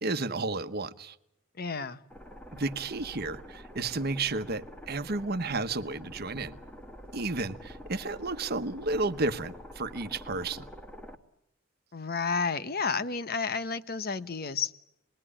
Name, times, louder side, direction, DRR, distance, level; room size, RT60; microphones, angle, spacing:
voice 1, 0.0-1.2 2.5-6.6 7.1-10.7, right 3 dB, 55° right, 10 dB, 1.2 m, -32 dB
voice 2, 1.6-2.0 11.9-14.7, left 5 dB, 50° left, 13 dB, 1.1 m, -31 dB
sound 1, 2.1-11.2, equal, 10° left, 1.9 m, -47 dB
28.0 x 21.0 x 10.0 m, 0.83 s
head